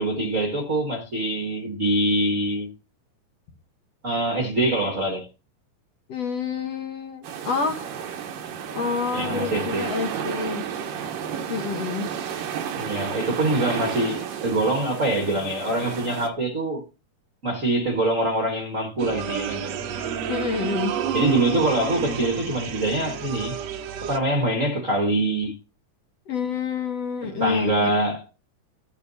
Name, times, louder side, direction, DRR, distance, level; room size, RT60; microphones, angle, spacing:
voice 1, 0.0-2.7 4.0-5.3 9.1-9.9 12.7-16.8 17.4-19.7 21.1-23.6 24.0-25.5 27.2-28.2, right 1 dB, 35° right, 1.2 m, -24 dB
voice 2, 6.1-7.9 8.7-10.7 11.5-12.1 20.3-21.0 26.3-27.9, left 5 dB, 60° left, 1.9 m, -28 dB
sound 1, 7.2-16.3, right 8 dB, 85° right, 2.9 m, -32 dB
sound 2, 19.0-24.2, right 9 dB, 65° right, 1.8 m, -30 dB
14.5 x 8.3 x 2.7 m
omnidirectional pair, 3.8 m